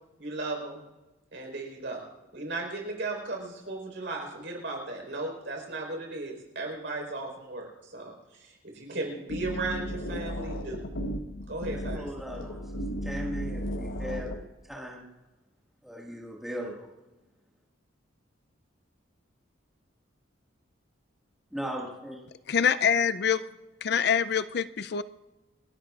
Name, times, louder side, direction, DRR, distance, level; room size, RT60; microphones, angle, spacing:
voice 1, 0.2-0.8 1.3-2.0 2.3-10.8 11.5-12.1, right 2 dB, 65° right, 1 dB, 4.4 m, -36 dB
sound 1, 9.3-14.4, equal, 90° left, 1.1 m, -35 dB
voice 2, 11.7-15.1 15.8-16.9 21.5-22.2, equal, ahead, -2 dB, 1.8 m, -38 dB
voice 3, 22.5-23.4 23.8-25.0, left 7 dB, 55° left, 13 dB, 0.4 m, -25 dB
29.0 x 13.0 x 2.5 m, 1.1 s
head